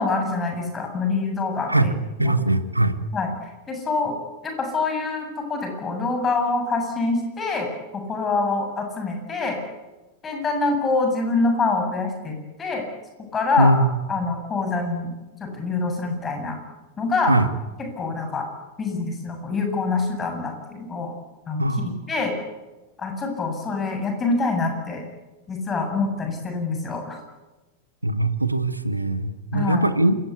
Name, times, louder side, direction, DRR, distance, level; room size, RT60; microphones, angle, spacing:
voice 1, 0.0-1.9 2.2-2.4 3.1-4.2 4.4-9.6 10.2-12.8 13.2-13.8 14.1-15.1 15.4-16.6 17.0-17.4 17.8-18.5 18.8-21.1 21.5-22.4 23.0-25.0 25.5-27.2 29.5-29.9, left 3 dB, 20° left, 4 dB, 7.9 m, -25 dB
voice 2, 2.2-3.0 13.6-13.9 17.3-17.4 21.6-22.0 28.0-30.2, right 1 dB, 85° right, 11 dB, 1.7 m, -21 dB
28.5 x 17.5 x 8.4 m, 1.1 s
figure-of-eight pair, 90°, 0 cm